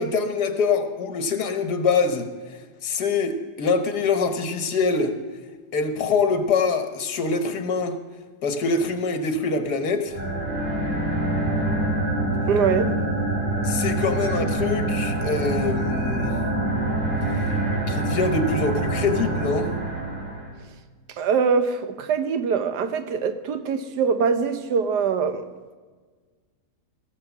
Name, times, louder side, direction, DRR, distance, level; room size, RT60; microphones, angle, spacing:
voice 1, 0.0-5.2 5.7-8.0 8.4-10.2 13.6-16.4 17.3-17.4 17.9-19.7, left 4 dB, 75° left, 1.8 m, -24 dB
sound 1, 10.1-20.5, right 1 dB, 30° right, 3.4 m, -25 dB
voice 2, 12.5-12.9 21.2-25.5, right 6 dB, 90° right, 1.5 m, -23 dB
16.5 x 7.1 x 7.2 m
omnidirectional pair, 1.7 m